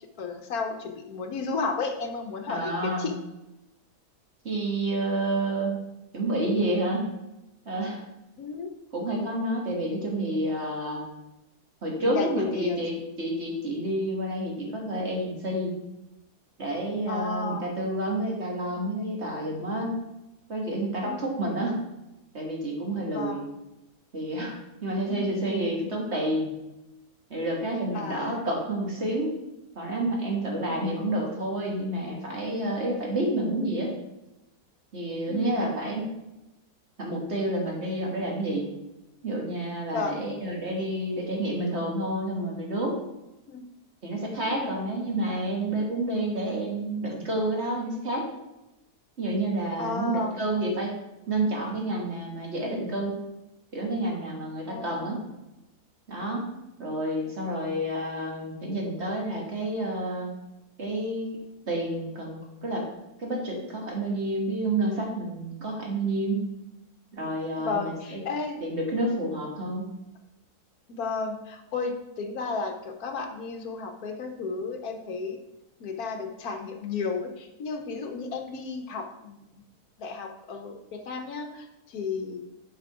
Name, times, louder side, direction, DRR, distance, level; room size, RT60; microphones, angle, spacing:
voice 1, 0.2-3.1 8.4-8.7 12.0-13.0 17.1-17.7 21.0-21.5 23.1-23.4 25.1-25.4 27.9-28.4 30.7-30.9 35.3-35.7 39.9-40.2 43.5-43.6 44.5-44.7 49.8-50.4 54.7-55.3 67.6-68.6 70.9-75.4 75.8-79.5 80.0-81.6 81.9-82.4, left 4 dB, 70° left, 5 dB, 1.3 m, -33 dB
voice 2, 2.5-3.1 4.4-5.8 6.1-7.1 7.7-8.0 8.9-11.0 11.8-15.7 16.6-19.9 20.5-21.8 22.3-23.4 24.1-26.5 27.3-29.4 29.8-33.9 34.9-36.1 37.0-38.7 39.2-42.9 44.0-48.3 49.2-50.9 51.3-53.2 53.7-55.1 56.1-56.5 56.8-60.3 60.8-61.3 61.7-62.9 63.2-66.4 67.1-68.2 68.6-69.9, right 1 dB, 45° right, -1 dB, 1.9 m, -29 dB
7.2 x 5.8 x 4.8 m, 0.94 s
omnidirectional pair, 1.7 m